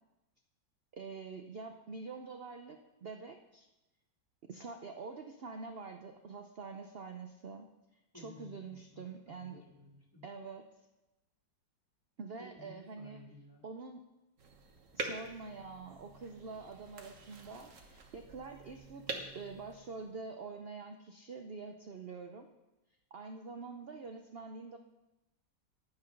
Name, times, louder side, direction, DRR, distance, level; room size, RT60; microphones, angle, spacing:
voice 1, 0.9-3.7 4.5-7.7 8.1-9.6 10.2-10.7 12.2-13.2 13.6-14.0 14.9-22.5 23.1-24.8, right 4 dB, 75° right, 5 dB, 0.5 m, -46 dB
voice 2, 8.1-10.2 12.4-13.6, left 1 dB, 15° left, -2 dB, 1.7 m, -55 dB
sound 1, 14.4-20.3, right 3 dB, 50° right, 1.4 m, -46 dB
9.8 x 9.4 x 5.3 m, 1.0 s
omnidirectional pair, 1.9 m